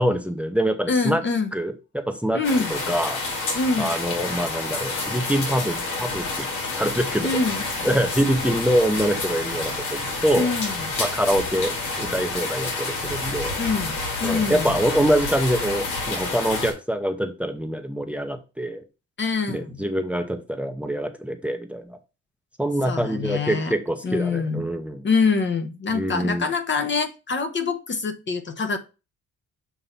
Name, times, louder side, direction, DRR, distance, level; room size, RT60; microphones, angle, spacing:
voice 1, 0.0-1.2 1.5-2.4 2.7-3.2 3.8-6.5 6.7-7.3 7.8-10.5 11.0-13.6 14.2-18.8 19.5-22.0 22.6-25.0 25.9-26.5, equal, 5° right, 7 dB, 0.8 m, -25 dB
voice 2, 0.9-1.5 2.3-2.7 3.5-3.9 7.2-7.7 10.3-10.9 13.6-14.7 19.2-19.8 22.8-23.7 24.0-24.7 25.0-28.8, left 4 dB, 40° left, 7 dB, 1.0 m, -25 dB
sound 1, 2.4-16.7, left 3 dB, 90° left, 2.4 m, -29 dB
7.1 x 2.9 x 5.5 m, 0.30 s
cardioid pair, 90°, 30 cm